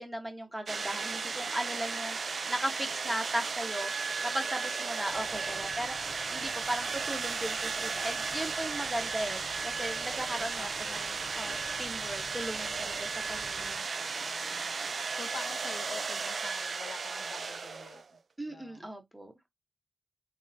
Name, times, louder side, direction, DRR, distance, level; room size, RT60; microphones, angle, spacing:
voice 1, 0.0-3.9 4.2-13.9 18.4-19.3, right 1 dB, 10° right, 1.1 m, -37 dB
sound 1, 0.7-18.2, right 4 dB, 55° right, 0.3 m, -35 dB
sound 2, 5.1-13.8, left 2 dB, 40° left, 0.9 m, -52 dB
voice 2, 5.3-5.8 10.4-11.0 13.9-14.7 15.1-18.0 18.5-18.9, left 5 dB, 85° left, 0.7 m, -47 dB
4.4 x 3.5 x 2.7 m
wide cardioid pair, 145°, 0 cm